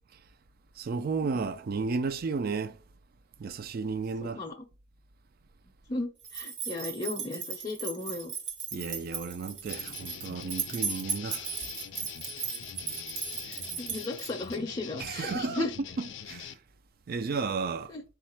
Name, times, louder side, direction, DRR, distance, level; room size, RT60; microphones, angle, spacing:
voice 1, 0.8-2.8 3.4-4.4 8.7-11.5 15.0-15.7 16.0-16.5 17.1-17.9, right 4 dB, 50° right, 0.4 m, -33 dB
voice 2, 4.2-4.5 5.9-8.3 13.5-15.7 17.9-18.0, left 2 dB, 30° left, 0.6 m, -36 dB
sound 1, 6.2-14.6, right 6 dB, 70° right, 1.0 m, -36 dB
sound 2, 9.7-16.5, left 8 dB, 70° left, 0.4 m, -43 dB
4.2 x 2.4 x 4.3 m
head